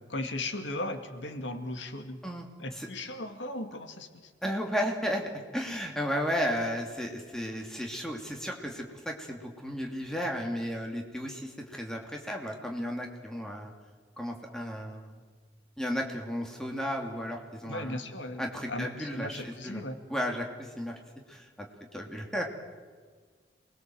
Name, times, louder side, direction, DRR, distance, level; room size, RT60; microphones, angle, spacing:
voice 1, 0.1-2.3 2.6-4.3 17.6-20.0, left 1 dB, 90° left, 7 dB, 2.2 m, -37 dB
voice 2, 2.2-2.9 4.4-5.2 5.5-13.7 14.2-15.2 15.8-18.0 18.4-19.8 20.1-20.9 21.3-21.7 21.9-22.4, equal, 5° left, 1 dB, 2.7 m, -34 dB
27.5 x 21.0 x 7.8 m, 1.5 s
head